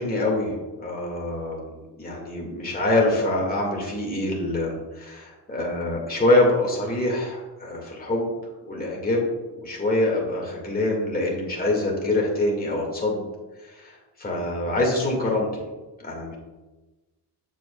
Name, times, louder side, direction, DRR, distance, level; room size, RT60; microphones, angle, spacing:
voice 1, 0.0-8.3 8.7-9.2 9.6-13.2 13.7-15.7 16.0-16.3, left 2 dB, 20° left, -1 dB, 1.8 m, -25 dB
7.4 x 7.3 x 2.3 m, 1.1 s
cardioid pair, 115°, 40 cm